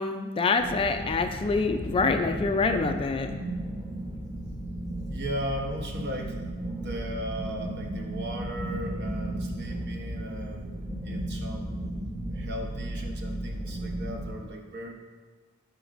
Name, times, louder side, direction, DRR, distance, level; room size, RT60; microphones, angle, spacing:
voice 1, 0.0-3.3, left 4 dB, 25° left, 6 dB, 0.3 m, -26 dB
sound 1, 0.6-14.3, right 1 dB, 15° right, 1.0 m, -35 dB
voice 2, 5.1-12.0 12.3-14.9, right 1 dB, 50° right, 2 dB, 0.9 m, -37 dB
11.0 x 5.1 x 2.5 m, 1.4 s
head